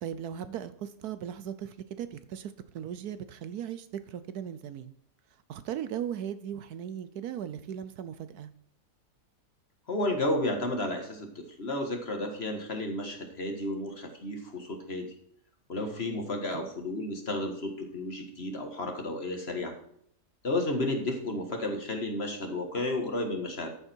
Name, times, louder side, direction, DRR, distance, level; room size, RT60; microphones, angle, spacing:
voice 1, 0.0-4.9 5.5-8.5 16.5-16.7, right 9 dB, 70° right, 13 dB, 1.1 m, -38 dB
voice 2, 9.9-15.1 15.7-19.7 20.4-23.7, left 1 dB, 40° left, 4 dB, 1.8 m, -32 dB
13.5 x 7.4 x 4.5 m, 0.69 s
omnidirectional pair, 1.8 m